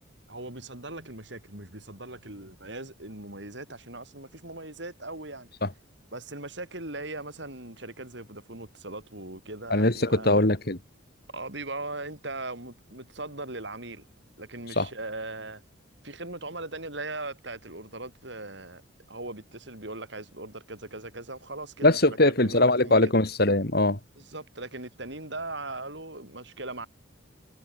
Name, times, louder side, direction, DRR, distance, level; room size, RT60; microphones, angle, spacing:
voice 1, 0.3-5.5 6.1-10.4 11.3-14.0 14.4-15.6 16.0-18.8 19.1-22.0 22.2-23.1 24.2-26.9, right 2 dB, 60° right, 6.6 m, -39 dB
voice 2, 9.7-10.8 14.8-14.9 21.8-24.0, left 2 dB, 50° left, 2.6 m, -21 dB
head